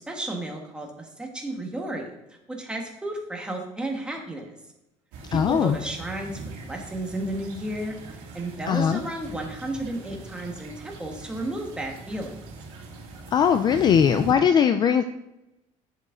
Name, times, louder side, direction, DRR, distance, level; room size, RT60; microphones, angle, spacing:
voice 1, 0.0-2.2 2.5-4.5 5.3-6.3 6.6-7.9 8.3-12.3, right 1 dB, 5° right, 1 dB, 1.4 m, -33 dB
sound 1, 5.1-14.3, right 3 dB, 75° right, 2.2 m, -40 dB
voice 2, 5.3-5.8 8.7-9.0 13.3-15.0, left 8 dB, 30° left, 9 dB, 0.4 m, -20 dB
8.5 x 7.3 x 3.8 m, 0.92 s
cardioid pair, 150°, 14 cm